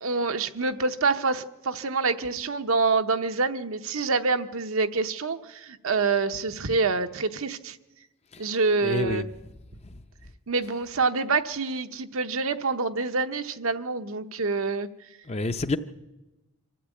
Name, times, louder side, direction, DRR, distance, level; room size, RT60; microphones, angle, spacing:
voice 1, 0.0-7.8 8.4-9.2 10.5-14.9, right 4 dB, 70° right, 0.9 m, -26 dB
voice 2, 8.8-9.3 15.3-15.8, left 2 dB, 30° left, 0.6 m, -28 dB
25.0 x 13.5 x 8.4 m
head